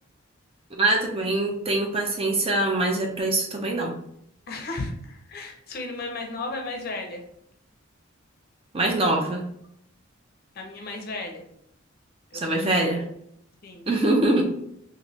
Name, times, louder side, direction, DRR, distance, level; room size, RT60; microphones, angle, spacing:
voice 1, 0.7-4.0 8.7-9.4 12.3-13.1 13.9-14.5, right 2 dB, 25° right, 1 dB, 0.4 m, -23 dB
voice 2, 4.5-7.2 10.6-11.4 12.3-13.0 13.6-13.8, left 2 dB, 45° left, 2 dB, 0.5 m, -35 dB
3.1 x 2.6 x 2.7 m, 0.72 s
head